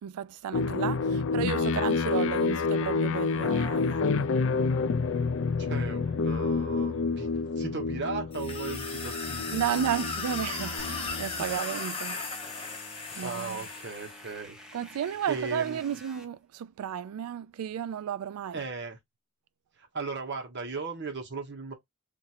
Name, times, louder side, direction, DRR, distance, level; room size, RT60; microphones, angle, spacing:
voice 1, 0.0-4.3 9.5-12.2 13.1-13.6 14.7-18.6, right 9 dB, 85° right, 0.3 m, -33 dB
sound 1, 0.5-11.5, left 4 dB, 60° left, 0.4 m, -29 dB
voice 2, 5.6-7.3 7.6-9.5 13.2-14.6 15.3-15.8 18.5-19.0 19.8-21.7, right 4 dB, 50° right, 1.1 m, -37 dB
sound 2, 8.3-14.3, left 4 dB, 25° left, 0.9 m, -37 dB
sound 3, 10.8-16.3, equal, 5° right, 0.7 m, -49 dB
3.0 x 2.6 x 4.1 m
head